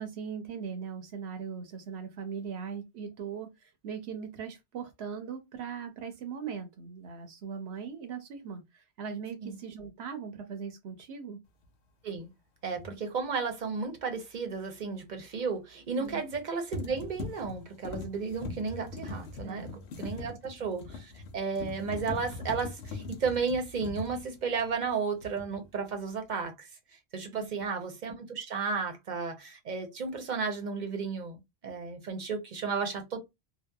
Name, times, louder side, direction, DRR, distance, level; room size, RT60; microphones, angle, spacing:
voice 1, 0.0-11.4 16.0-16.2 19.4-19.8 20.1-20.3 27.3-27.7, right 6 dB, 85° right, 0.9 m, -40 dB
voice 2, 12.6-26.7 27.1-33.2, right 5 dB, 50° right, 0.7 m, -33 dB
sound 1, 12.7-12.9 16.0-16.4 16.7-24.9 25.2-25.7, left 3 dB, 90° left, 0.9 m, -41 dB
2.7 x 2.1 x 2.2 m
omnidirectional pair, 1.1 m